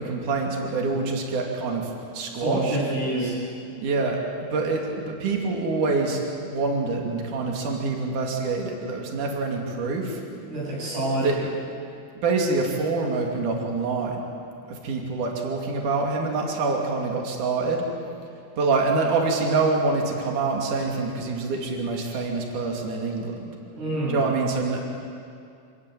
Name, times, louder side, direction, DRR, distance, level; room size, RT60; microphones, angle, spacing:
voice 1, 0.0-2.8 3.8-10.2 11.2-11.5 12.2-14.2 14.7-17.9 18.6-23.4 24.1-24.8, right 3 dB, 55° right, 0 dB, 4.0 m, -26 dB
voice 2, 2.4-3.4 10.5-11.3 23.7-24.2, right 1 dB, 80° right, -6 dB, 10.0 m, -27 dB
26.0 x 16.5 x 9.3 m, 2.4 s
omnidirectional pair, 4.3 m